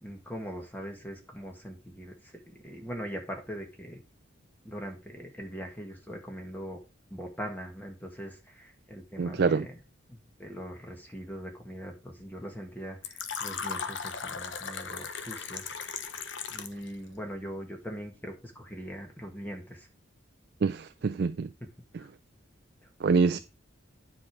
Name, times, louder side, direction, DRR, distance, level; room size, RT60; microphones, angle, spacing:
voice 1, 0.0-4.0 4.6-6.8 7.1-9.8 10.1-15.7 16.5-19.9 22.0-22.1 23.3-23.4, equal, 10° left, 1.5 m, -41 dB
voice 2, 9.2-9.7 20.6-21.5 23.0-23.4, right 4 dB, 50° right, 0.3 m, -25 dB
Fill (with liquid), 13.0-16.9, left 6 dB, 65° left, 0.9 m, -37 dB
9.9 x 5.1 x 4.7 m
head